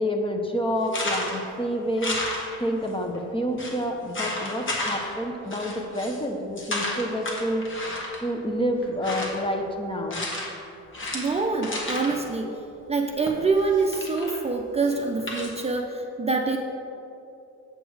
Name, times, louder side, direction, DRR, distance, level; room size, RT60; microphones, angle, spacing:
voice 1, 0.0-2.2 2.6-7.6 8.2-10.2, equal, 15° left, 3 dB, 0.9 m, -28 dB
sound 1, 0.9-1.5 2.0-2.9 3.1-3.2 3.6-3.8 4.1-5.2 5.5-6.2 6.6-8.3 8.8-9.5 10.1-10.6 10.9-12.2 13.3-14.4 14.8-15.6, left 1 dB, 40° left, 1.5 m, -32 dB
voice 2, 11.1-12.5 12.9-16.6, right 4 dB, 20° right, 1 dB, 0.6 m, -25 dB
7.9 x 6.1 x 4.7 m, 2.8 s
cardioid pair, 90°, 30 cm